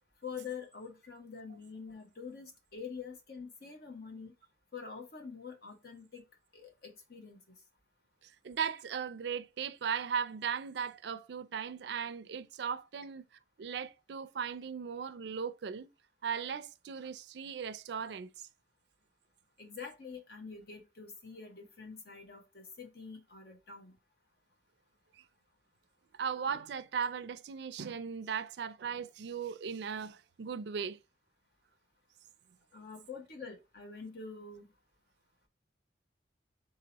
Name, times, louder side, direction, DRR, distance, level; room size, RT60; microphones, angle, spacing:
voice 1, 0.2-4.3 4.7-6.2 6.5-7.4 19.6-23.9 32.7-34.7, left 5 dB, 55° left, 1.0 m, -46 dB
voice 2, 8.4-13.2 13.6-15.9 16.2-18.5 26.2-31.0, right 7 dB, 65° right, 0.4 m, -37 dB
3.9 x 2.9 x 4.0 m
head